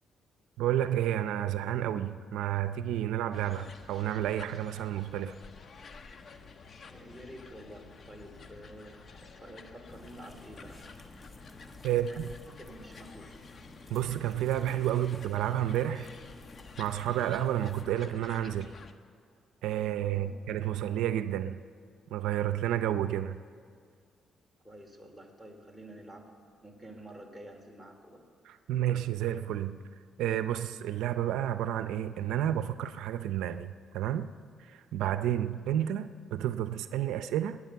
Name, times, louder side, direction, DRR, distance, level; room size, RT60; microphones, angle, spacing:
voice 1, 0.6-5.3 11.8-12.3 13.9-16.1 16.8-18.7 19.6-21.6 22.1-23.4 28.5-29.8 30.2-34.3 34.7-37.6, right 11 dB, 90° right, 11 dB, 0.5 m, -30 dB
sound 1, 3.3-18.9, left 4 dB, 45° left, 1.1 m, -51 dB
voice 2, 6.9-10.9 11.9-13.4 20.1-20.3 24.6-26.3 26.6-28.2, right 1 dB, ahead, 1 dB, 2.9 m, -49 dB
sound 2, 9.9-17.8, left 2 dB, 25° left, 1.4 m, -52 dB
21.5 x 9.6 x 7.0 m, 2.1 s
cardioid pair, 90°, 0 cm